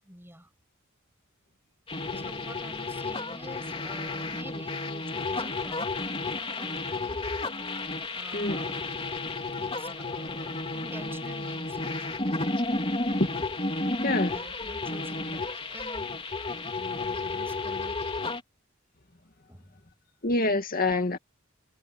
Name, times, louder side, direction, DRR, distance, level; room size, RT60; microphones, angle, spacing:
voice 1, 0.0-0.5 2.1-7.3 8.1-8.9 9.6-12.1 14.3-15.4 15.7-16.1 16.7-18.0 19.5-19.8, right 1 dB, 10° right, 6.7 m, -48 dB
sound 1, 1.9-18.4, left 2 dB, 25° left, 3.4 m, -32 dB
voice 2, 14.0-14.4 20.2-21.2, left 2 dB, 45° left, 2.3 m, -26 dB
head